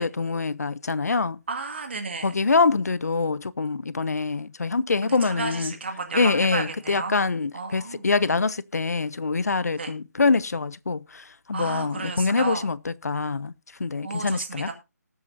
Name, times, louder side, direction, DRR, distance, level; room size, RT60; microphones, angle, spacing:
voice 1, 0.0-1.4 2.2-5.7 6.1-13.5 13.8-14.7, left 4 dB, 65° left, 0.7 m, -25 dB
voice 2, 1.5-2.3 5.0-7.2 7.5-8.1 9.8-9.9 11.5-12.7 14.0-14.7, right 4 dB, 40° right, 2.1 m, -33 dB
19.5 x 7.7 x 2.7 m
figure-of-eight pair, 175°, 9 cm